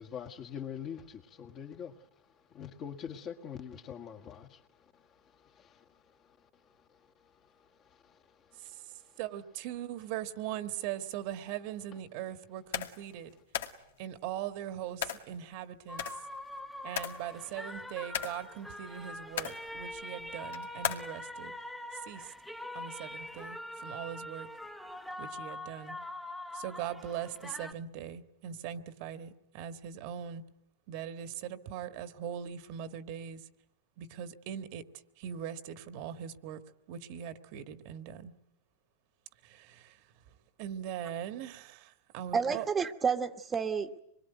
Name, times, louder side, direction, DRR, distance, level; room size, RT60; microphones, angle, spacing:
voice 1, 0.0-9.2, left 8 dB, 30° left, 6 dB, 1.8 m, -46 dB
voice 2, 9.2-13.3 14.0-16.1 16.8-21.6 21.9-22.3 22.7-24.5 25.2-25.9 26.5-30.4 30.9-33.5 34.0-34.8 35.2-36.6 36.9-38.3 39.4-40.0 40.6-42.6, right 10 dB, 50° right, 10 dB, 1.6 m, -40 dB
sound 1, 12.7-13.1 13.5-13.8 15.0-15.3 16.0-16.6 17.0-17.3 17.8-18.6 19.2-19.7 20.5-21.1, left 10 dB, 80° left, 2.2 m, -36 dB
sound 2, 15.9-27.7, left 1 dB, 5° left, 1.2 m, -43 dB
voice 3, 42.3-44.0, right 6 dB, 15° right, 8 dB, 1.4 m, -30 dB
25.5 x 22.0 x 9.2 m, 0.77 s
supercardioid pair, 140°, 0 cm